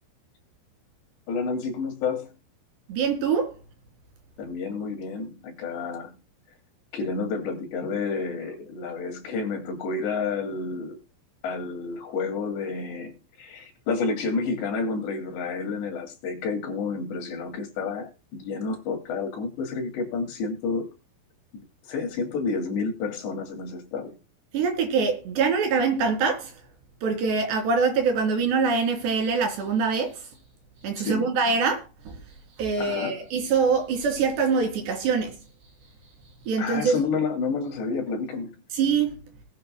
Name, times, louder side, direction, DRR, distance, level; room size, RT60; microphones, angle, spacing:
voice 1, 1.3-2.3 4.4-6.1 6.9-11.0 11.4-13.1 13.4-20.9 21.9-24.2 31.0-31.4 32.8-33.2 36.6-38.6, left 4 dB, 70° left, 4.6 m, -30 dB
voice 2, 2.9-3.5 24.5-26.5 27.0-30.2 30.8-32.1 32.6-35.4 36.5-37.0 38.7-39.2, right 5 dB, 65° right, 5.4 m, -24 dB
19.5 x 9.0 x 2.2 m
omnidirectional pair, 5.3 m